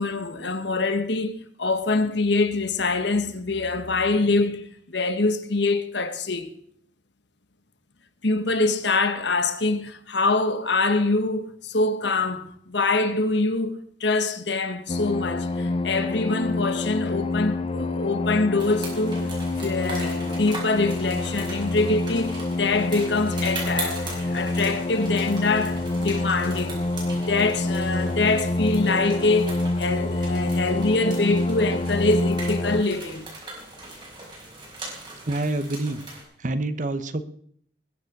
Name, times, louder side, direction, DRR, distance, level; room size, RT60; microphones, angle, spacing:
voice 1, 0.0-6.5 8.2-19.3 19.6-26.8 27.3-33.3, left 3 dB, 70° left, 1.3 m, -24 dB
sound 1, 14.9-32.8, left 2 dB, 30° left, 0.5 m, -27 dB
sound 2, 18.6-36.2, right 2 dB, 25° right, 5.1 m, -39 dB
voice 2, 35.2-36.0 36.4-37.2, right 2 dB, 40° right, 0.9 m, -27 dB
20.5 x 7.4 x 6.5 m
head